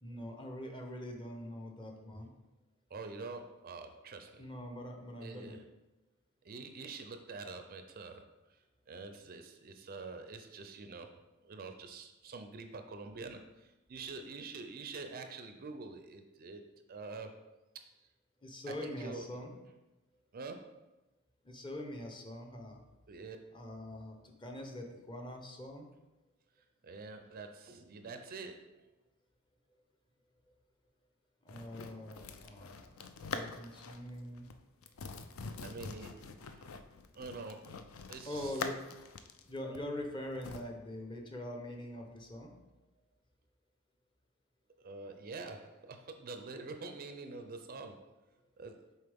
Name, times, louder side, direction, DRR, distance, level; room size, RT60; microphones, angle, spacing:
voice 1, 0.0-2.3 4.4-5.6 18.4-19.5 21.4-22.8 23.5-25.9 31.4-33.0 33.3-34.5 38.2-38.8 39.5-42.5, left 1 dB, 20° left, 2 dB, 0.7 m, -43 dB
voice 2, 2.9-4.5 5.2-5.6 6.4-8.2 8.9-11.1 11.4-13.4 13.9-16.6 16.9-17.5 17.7-17.8 18.7-19.3 20.3-20.8 23.1-23.4 26.8-28.7 35.6-36.7 37.1-37.7 38.1-38.5 44.8-48.2 48.6-48.8, right 4 dB, 40° right, 6 dB, 0.4 m, -46 dB
sound 1, 31.5-34.1 34.4-34.5 34.8-40.6, left 4 dB, 65° left, 0.4 m, -44 dB
6.7 x 4.3 x 3.5 m, 1.0 s
head